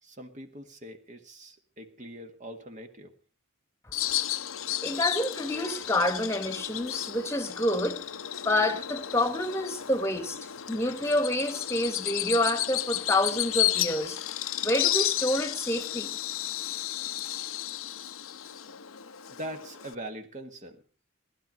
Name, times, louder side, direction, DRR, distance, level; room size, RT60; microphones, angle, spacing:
voice 1, 0.0-3.1 19.3-20.8, right 1 dB, 35° right, 1.7 m, -42 dB
Bird vocalization bird call bird song, 3.9-19.9, left 13 dB, 85° left, 0.8 m, -33 dB
voice 2, 4.8-8.0 8.4-14.2 14.6-16.2, left 1 dB, 15° left, 1.5 m, -28 dB
19.5 x 12.5 x 5.2 m
head